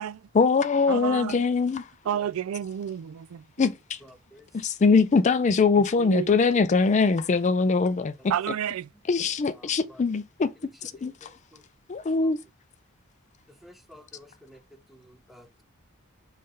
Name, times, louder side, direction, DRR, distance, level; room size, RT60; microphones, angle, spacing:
voice 1, 0.3-1.8 3.6-4.0 4.5-8.1 9.1-10.5 10.8-11.1 11.9-12.4, left 4 dB, 35° left, 0.4 m, -22 dB
voice 2, 0.9-1.4 2.1-3.4 6.0-6.3 8.3-8.9, right 9 dB, 70° right, 0.3 m, -30 dB
voice 3, 11.0-11.6 12.0-12.2 13.6-14.6 14.9-15.0 15.3-15.6, left 1 dB, ahead, 0.7 m, -51 dB
5.5 x 3.3 x 5.3 m
head